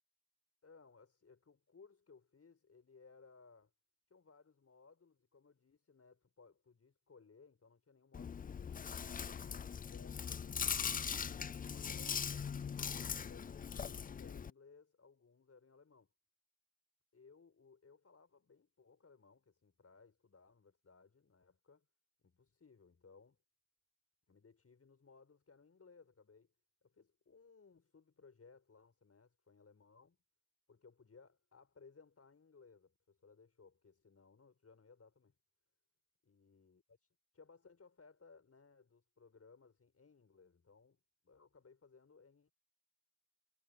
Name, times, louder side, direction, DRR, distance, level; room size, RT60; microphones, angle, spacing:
voice 1, 0.6-3.7 4.1-8.7 9.0-10.6 11.3-16.1 17.1-21.9 22.2-23.4 24.3-26.5 26.8-30.2 30.7-35.4 36.2-42.5, left 4 dB, 45° left, 7.0 m, -63 dB
Chewing mastication, 8.1-14.5, left 7 dB, 25° left, 0.3 m, -41 dB
cardioid pair, 65°, 34 cm